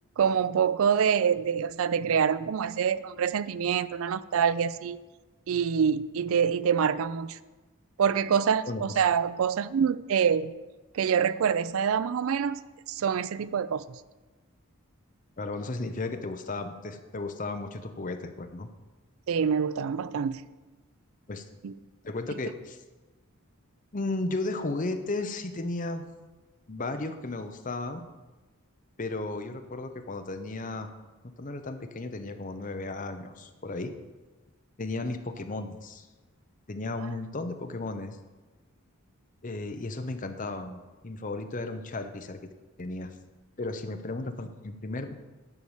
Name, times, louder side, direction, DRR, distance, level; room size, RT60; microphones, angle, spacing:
voice 1, 0.2-5.0 5.5-7.4 8.0-10.5 10.9-12.6 12.9-13.9 19.3-20.4 21.6-21.7, right 7 dB, 65° right, 17 dB, 0.3 m, -26 dB
voice 2, 8.7-9.0 15.4-18.7 21.3-21.5 22.0-22.8 23.9-26.0 26.7-28.1 29.0-30.9 31.2-33.9 34.8-36.1 36.7-38.2 39.4-42.5 42.8-43.1 43.6-45.2, left 2 dB, 35° left, 8 dB, 0.7 m, -34 dB
10.5 x 4.7 x 7.2 m, 1.2 s
head